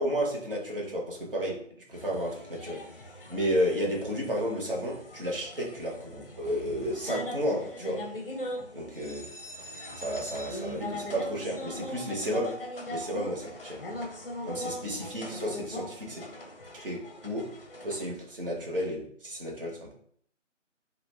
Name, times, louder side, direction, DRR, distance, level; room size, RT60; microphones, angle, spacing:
voice 1, 0.0-1.6 1.9-2.8 3.3-8.0 8.7-9.3 10.0-12.5 12.9-13.8 14.5-16.2 16.7-17.4 17.8-19.9, equal, 45° right, -2 dB, 0.8 m, -32 dB
sound 1, 1.9-18.1, left 1 dB, 50° left, 0.5 m, -40 dB
2.4 x 2.1 x 3.1 m, 0.62 s
figure-of-eight pair, 160°, 38 cm